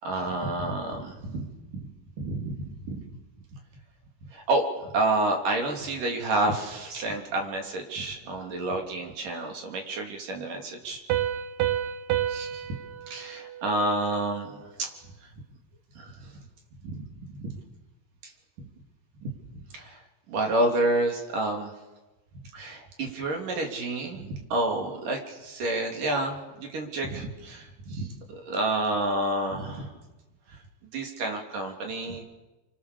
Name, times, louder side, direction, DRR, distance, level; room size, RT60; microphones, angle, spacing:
voice 1, 0.0-1.9 2.2-3.0 4.3-11.0 12.3-12.7 13.1-14.9 16.0-16.4 16.8-17.6 19.2-19.3 19.7-20.0 20.3-21.7 22.5-29.9 30.9-32.2, right 2 dB, 55° right, 2 dB, 4.6 m, -29 dB
Piano, 11.1-14.5, right 11 dB, 70° right, 2.2 m, -30 dB
30.0 x 25.5 x 7.0 m, 1.1 s
omnidirectional pair, 4.9 m